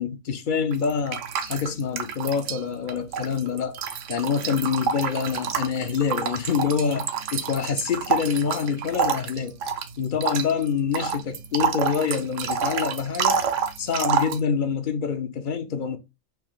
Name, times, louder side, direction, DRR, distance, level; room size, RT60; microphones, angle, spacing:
voice 1, 0.0-3.8 4.1-9.6 10.0-13.4 13.8-16.0, left 6 dB, 55° left, 0.6 m, -26 dB
sound 1, 0.7-2.6 2.9-14.4, right 6 dB, 70° right, 1.0 m, -28 dB
4.4 x 2.7 x 3.8 m
omnidirectional pair, 1.4 m